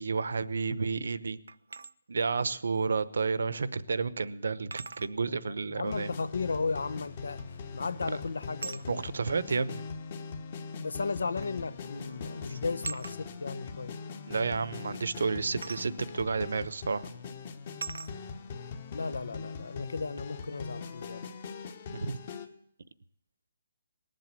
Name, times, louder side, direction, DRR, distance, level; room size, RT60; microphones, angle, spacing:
voice 1, 0.0-1.4 2.1-6.1 8.9-9.8 14.3-17.1 21.9-22.2, right 4 dB, 70° right, 0.9 m, -31 dB
sound 1, 1.5-1.9 3.5-3.6 4.7-5.1 7.4-7.7 8.6-8.9 10.1-10.2 11.4-11.6 11.9-12.2 12.8-13.2 15.6-15.9 16.7-16.8 17.8-18.1, right 4 dB, 90° right, 0.5 m, -40 dB
voice 2, 5.2-7.4 7.7-8.8 10.8-13.9 18.9-21.2, left 4 dB, 85° left, 0.9 m, -35 dB
sound 2, 5.8-22.5, left 5 dB, 30° left, 1.1 m, -41 dB
19.0 x 7.7 x 8.3 m
hypercardioid pair, 170°, 0 cm